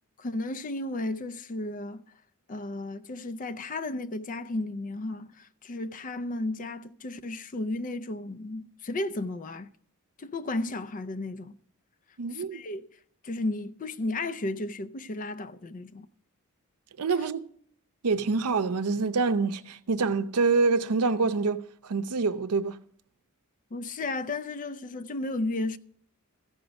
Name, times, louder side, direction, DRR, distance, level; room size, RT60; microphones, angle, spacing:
voice 1, 0.2-2.0 2.5-9.7 10.2-11.6 12.5-12.9 13.2-16.1 23.7-25.8, left 2 dB, 35° left, 0.5 m, -33 dB
voice 2, 12.2-12.6 17.0-17.5 18.0-22.8, right 4 dB, 90° right, 0.6 m, -26 dB
14.0 x 5.2 x 7.9 m
head